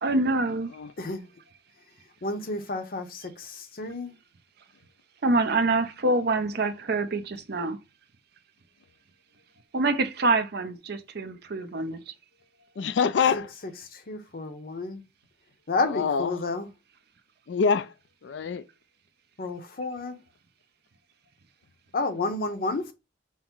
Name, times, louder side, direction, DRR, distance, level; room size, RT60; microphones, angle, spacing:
voice 1, 0.0-0.7 5.2-7.8 9.7-12.1, right 2 dB, 60° right, 0.7 m, -26 dB
voice 2, 2.2-4.1 13.3-15.1 15.7-16.7 19.4-20.2 21.9-22.9, left 3 dB, 50° left, 0.8 m, -31 dB
voice 3, 12.8-13.5 15.9-16.3 17.5-17.9 18.2-18.6, left 6 dB, 70° left, 0.4 m, -25 dB
5.6 x 2.1 x 4.5 m
head